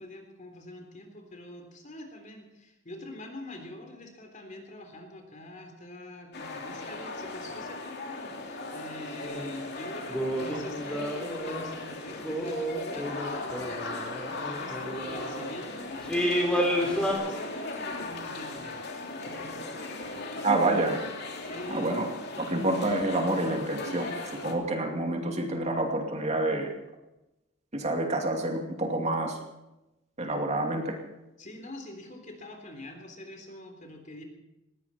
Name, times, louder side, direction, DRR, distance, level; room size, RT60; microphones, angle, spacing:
voice 1, 0.0-20.8 21.4-22.0 31.4-34.2, left 1 dB, 40° left, 4 dB, 3.5 m, -45 dB
sound 1, 6.3-24.5, left 2 dB, 55° left, 2.9 m, -38 dB
sound 2, 9.2-9.5 10.1-11.8 12.2-15.5 16.1-17.1, equal, 5° left, 3.5 m, -31 dB
voice 2, 20.4-21.0 21.7-22.1 22.4-24.1 24.4-26.7 27.7-29.4 30.2-31.0, right 2 dB, 35° right, 2 dB, 2.6 m, -28 dB
19.5 x 17.0 x 4.4 m, 0.95 s
head